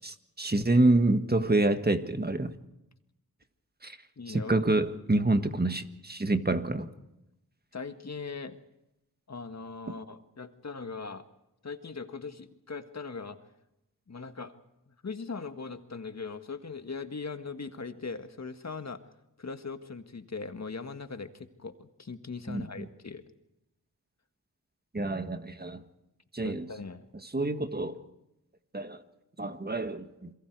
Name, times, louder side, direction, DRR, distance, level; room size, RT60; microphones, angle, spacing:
voice 1, 0.0-2.5 3.8-4.0 4.3-6.9 22.5-22.8 24.9-25.8 26.3-26.6 27.3-27.9 28.7-29.0 29.4-30.3, right 2 dB, 25° right, 8 dB, 1.6 m, -27 dB
voice 2, 4.2-4.6 7.7-8.6 9.3-11.2 11.6-13.4 14.1-14.5 14.9-19.0 19.4-23.2 26.4-27.1, left 4 dB, 45° left, 8 dB, 1.7 m, -40 dB
28.5 x 22.0 x 4.8 m, 0.89 s
cardioid pair, 55°, 38 cm